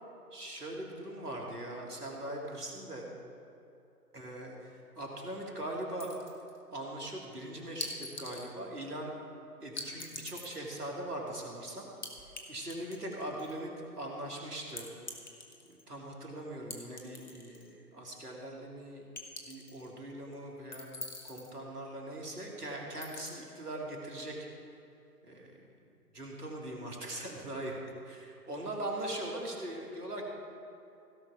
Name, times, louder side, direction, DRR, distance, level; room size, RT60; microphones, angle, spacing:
voice 1, 0.3-3.1 4.1-6.1 6.7-9.2 9.6-11.9 12.5-14.9 15.7-19.1 19.5-20.9 21.2-24.4 25.2-25.7 26.1-30.2, right 1 dB, 70° right, -1 dB, 2.5 m, -41 dB
sound 1, 6.0-6.6 7.8-8.5 9.8-10.6 12.0-12.4 12.7-13.6 14.8-15.8 16.7-17.7 18.1-18.2 19.2-19.9 20.7-21.5 23.0-23.3, left 3 dB, 30° left, 1.0 m, -43 dB
16.5 x 5.6 x 5.7 m, 2.7 s
figure-of-eight pair, 140°, 48 cm